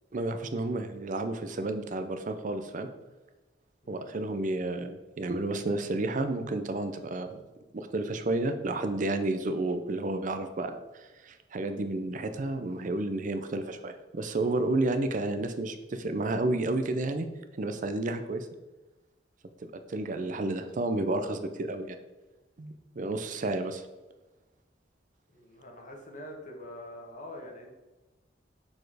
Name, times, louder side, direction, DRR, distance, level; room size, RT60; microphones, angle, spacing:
voice 1, 0.1-2.9 3.9-7.4 7.7-17.3 17.5-18.5 19.7-22.0 22.6-23.8, right 2 dB, 45° right, 9 dB, 0.5 m, -31 dB
voice 2, 3.8-4.2 25.3-27.7, left 1 dB, 45° left, 1 dB, 1.3 m, -45 dB
6.7 x 4.2 x 4.8 m, 1.1 s
head